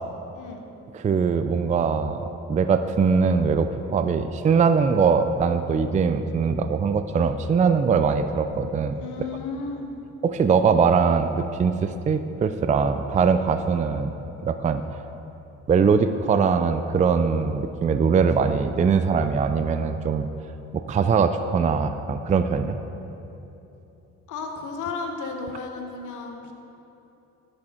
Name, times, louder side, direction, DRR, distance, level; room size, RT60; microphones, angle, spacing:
voice 1, 0.9-8.9 10.2-14.1 14.4-15.0 15.7-20.3 20.7-22.8, right 5 dB, 25° right, 9 dB, 0.4 m, -22 dB
voice 2, 9.0-9.9 24.3-26.5, left 4 dB, 85° left, 4 dB, 1.1 m, -33 dB
12.0 x 6.3 x 4.4 m, 3.0 s
cardioid pair, 90°, 30 cm